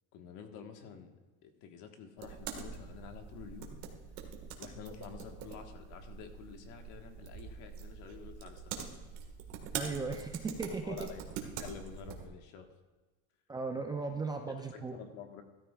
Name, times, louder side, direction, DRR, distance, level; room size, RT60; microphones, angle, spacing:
voice 1, 0.1-1.1 1.4-3.8 4.6-8.9 10.8-11.2 11.6-12.7 14.7-15.4, left 7 dB, 55° left, 5 dB, 1.4 m, -49 dB
sound 1, 2.2-12.3, right 7 dB, 65° right, 1.7 m, -44 dB
voice 2, 9.7-11.1 13.5-15.0, right 4 dB, 10° right, 3 dB, 0.4 m, -37 dB
13.5 x 13.5 x 2.4 m, 1.3 s
cardioid pair, 145°, 36 cm